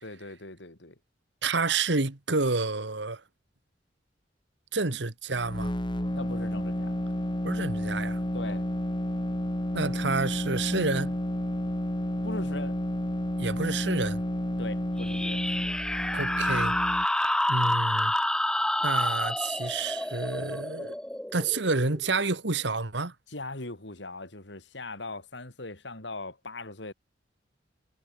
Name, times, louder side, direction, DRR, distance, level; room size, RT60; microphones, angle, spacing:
voice 1, 0.0-1.0 4.9-5.0 6.1-6.9 8.3-8.6 12.2-12.8 14.6-15.4 23.3-26.9, left 2 dB, 70° left, 3.7 m, -40 dB
voice 2, 1.4-3.2 4.7-5.7 7.4-8.2 9.7-11.2 13.4-14.2 16.1-16.8 17.5-18.1 18.8-20.9 21.3-23.1, right 3 dB, 65° right, 1.8 m, -29 dB
sound 1, 5.3-17.1, equal, 25° left, 2.4 m, -31 dB
sound 2, 15.0-22.2, left 1 dB, 5° left, 0.5 m, -29 dB
head